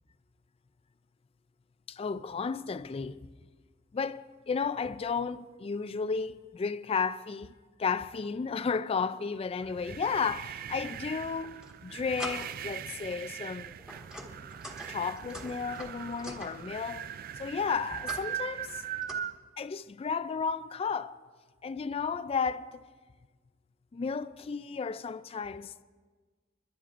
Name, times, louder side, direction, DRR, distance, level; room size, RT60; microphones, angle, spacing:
voice 1, 1.9-3.3 3.9-7.5 7.8-13.7 14.9-17.1 17.4-18.8 19.6-21.2 21.6-22.8 23.9-25.8, left 5 dB, 30° left, 0.3 m, -33 dB
sound 1, 9.6-19.4, right 9 dB, 50° right, 0.3 m, -40 dB
sound 2, 11.3-11.7 12.2-12.7 13.1-13.3 13.8-16.5 17.7-18.3 18.6-19.1, equal, 5° right, 1.5 m, -44 dB
30.0 x 11.5 x 2.5 m
head